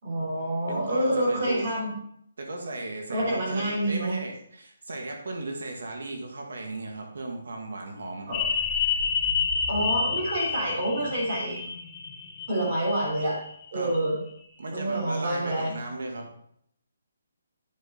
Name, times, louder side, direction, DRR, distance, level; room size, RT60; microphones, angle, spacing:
voice 1, 0.0-1.9 3.1-4.2 8.3-8.4 9.7-11.6 12.5-13.4 13.7-14.2 14.7-15.7, right 1 dB, 35° right, -4 dB, 3.7 m, -27 dB
voice 2, 0.7-1.7 2.4-8.3 13.7-14.0 14.6-16.3, right 2 dB, 80° right, 2 dB, 1.9 m, -36 dB
sound 1, 8.3-13.6 14.0-14.1, left 6 dB, 15° left, 1.0 m, -29 dB
9.5 x 6.1 x 4.0 m, 0.69 s
hypercardioid pair, 175°, 0 cm